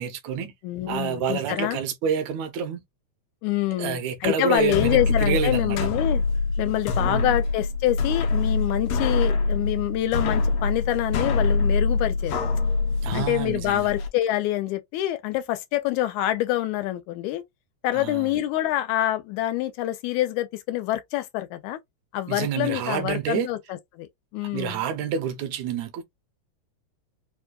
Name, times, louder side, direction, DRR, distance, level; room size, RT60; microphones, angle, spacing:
voice 1, 0.0-0.5 0.9-2.8 3.8-5.8 7.0-7.3 13.0-13.9 17.9-18.3 22.3-23.5 24.5-26.0, right 7 dB, 80° right, 2.0 m, -28 dB
voice 2, 0.6-1.8 3.4-6.2 6.6-12.4 13.1-17.4 17.8-21.8 22.1-24.8, left 14 dB, 90° left, 2.0 m, -26 dB
sound 1, 4.6-14.1, left 3 dB, 75° left, 1.5 m, -25 dB
4.8 x 2.2 x 2.2 m
omnidirectional pair, 3.3 m